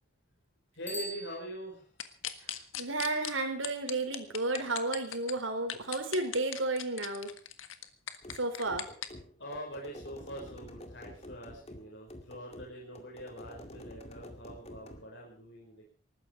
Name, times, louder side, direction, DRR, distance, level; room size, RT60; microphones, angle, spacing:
voice 1, 0.7-1.9 9.4-15.9, equal, 60° left, -1 dB, 5.6 m, -44 dB
Bicycle bell, 0.8-2.1, equal, 10° left, 3.3 m, -43 dB
sound 1, 2.0-3.3 3.6-5.3 5.7-9.1, left 10 dB, 85° left, 1.6 m, -38 dB
voice 2, 2.7-7.3 8.3-8.9, right 2 dB, 80° right, 5 dB, 4.4 m, -32 dB
sound 2, 8.2-15.1, left 1 dB, 30° left, 2.2 m, -49 dB
19.5 x 15.0 x 4.9 m, 0.40 s
head